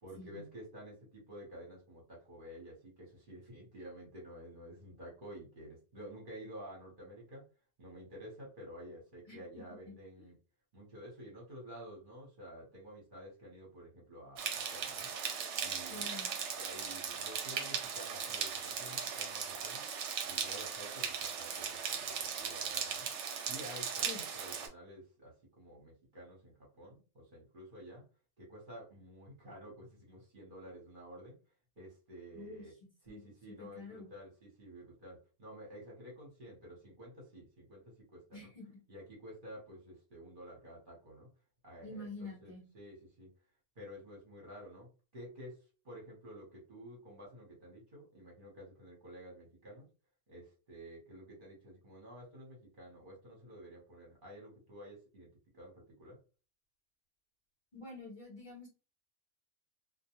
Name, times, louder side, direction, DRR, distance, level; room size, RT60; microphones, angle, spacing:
voice 1, 0.0-7.4 7.8-10.4 10.7-15.1 15.6-16.1 16.5-19.8 20.2-23.1 23.5-24.1 24.3-28.0 28.4-31.4 31.8-32.7 33.0-38.5 38.9-41.3 41.6-43.3 43.8-49.9 50.3-56.2, equal, 45° right, -3 dB, 1.0 m, -51 dB
sound 1, 14.4-24.7, right 7 dB, 70° right, 0.9 m, -38 dB
voice 2, 15.9-16.3 24.0-24.2 32.3-32.6 33.1-33.3 33.6-34.1 38.3-38.8 41.8-42.6 57.7-58.7, left 2 dB, 40° left, -2 dB, 1.0 m, -47 dB
2.3 x 2.2 x 2.9 m, 0.34 s
omnidirectional pair, 1.3 m